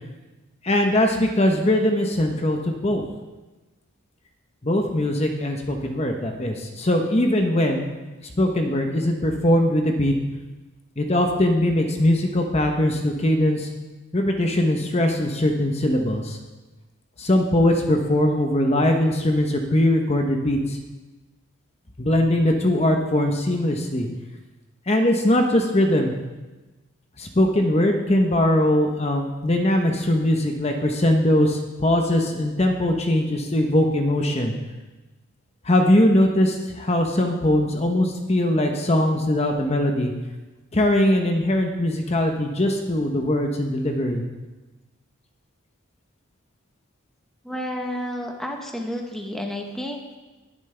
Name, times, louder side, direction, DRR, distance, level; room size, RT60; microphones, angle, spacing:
voice 1, 0.6-3.0 4.6-7.9 8.4-10.1 11.0-13.7 14.1-16.4 17.2-20.8 22.0-24.1 24.9-26.1 27.2-34.5 35.6-40.1 40.7-44.2, left 1 dB, 30° left, 3 dB, 0.9 m, -21 dB
voice 2, 47.4-50.2, equal, ahead, 1 dB, 1.0 m, -31 dB
20.0 x 7.4 x 3.4 m, 1.2 s
head